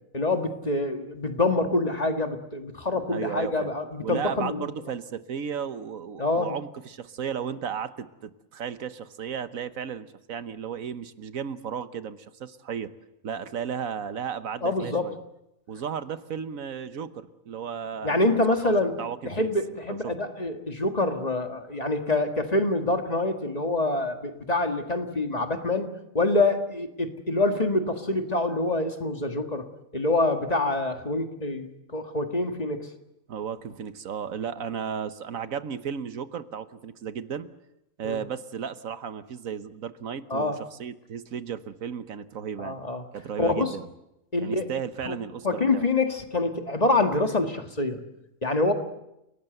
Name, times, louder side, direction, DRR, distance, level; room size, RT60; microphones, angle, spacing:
voice 1, 0.1-4.6 6.2-6.6 14.6-15.1 18.0-18.9 19.3-25.9 26.1-29.7 29.9-32.9 38.0-38.2 40.3-40.6 42.6-43.0 43.4-43.8 44.3-44.7 45.1-45.2 45.4-48.0 48.4-48.7, left 2 dB, 30° left, 6 dB, 1.8 m, -26 dB
voice 2, 3.1-3.7 4.0-12.9 13.2-15.2 15.7-19.5 19.9-20.1 33.3-37.5 38.0-42.8 43.1-43.9 44.4-45.8, right 7 dB, 90° right, 12 dB, 1.5 m, -34 dB
30.0 x 18.0 x 8.0 m, 0.88 s
omnidirectional pair, 1.4 m